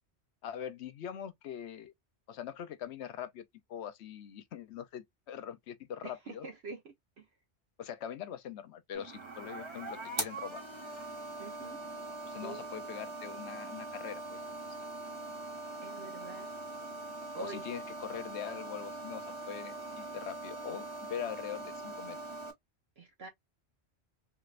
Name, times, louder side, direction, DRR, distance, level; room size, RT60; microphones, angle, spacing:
voice 1, 0.4-1.9 2.3-6.5 7.8-10.6 12.2-14.5 17.4-22.2, left 9 dB, 80° left, 0.9 m, -42 dB
voice 2, 6.0-7.3 11.4-11.8 12.4-12.9 15.8-16.5 17.3-17.6 23.0-23.3, right 3 dB, 70° right, 1.1 m, -45 dB
sound 1, 8.9-22.5, right 2 dB, 25° right, 1.1 m, -42 dB
3.5 x 3.2 x 2.4 m
omnidirectional pair, 1.1 m